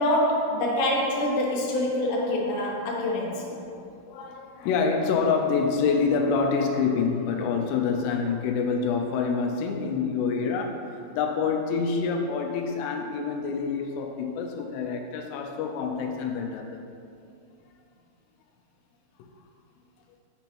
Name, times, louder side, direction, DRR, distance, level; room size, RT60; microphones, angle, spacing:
voice 1, 0.0-3.5, left 1 dB, 70° left, -2 dB, 2.5 m, -25 dB
voice 2, 3.4-3.8 4.1-16.8, left 5 dB, 90° left, 2 dB, 2.7 m, -27 dB
9.0 x 5.3 x 2.9 m, 2.5 s
omnidirectional pair, 4.8 m